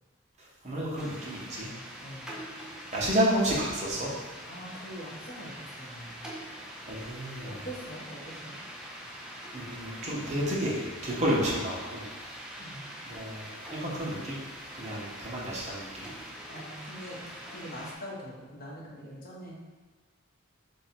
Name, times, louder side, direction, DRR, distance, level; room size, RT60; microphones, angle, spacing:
voice 1, 0.4-1.7 2.9-4.2 6.9-7.7 9.5-12.1 13.0-14.4 14.7-16.1, equal, 35° right, -4 dB, 0.9 m, -31 dB
sound 1, 1.0-17.9, equal, 5° right, 0.4 m, -44 dB
voice 2, 2.0-2.3 4.5-6.3 7.4-8.6 12.6-12.9 16.5-17.2 17.5-19.6, equal, 45° left, -5 dB, 1.0 m, -43 dB
3.1 x 2.7 x 4.3 m, 1.3 s
head